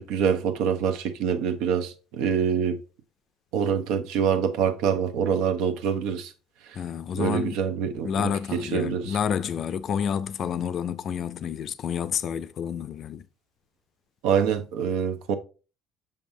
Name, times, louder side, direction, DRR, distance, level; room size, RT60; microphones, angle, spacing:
voice 1, 0.0-2.8 3.5-6.3 7.2-8.1 8.5-9.2 14.2-15.3, right 7 dB, 85° right, 0.9 m, -25 dB
voice 2, 6.7-7.6 8.0-13.2, left 8 dB, 40° left, 0.4 m, -29 dB
6.7 x 5.3 x 2.7 m
cardioid pair, 155°, 0 cm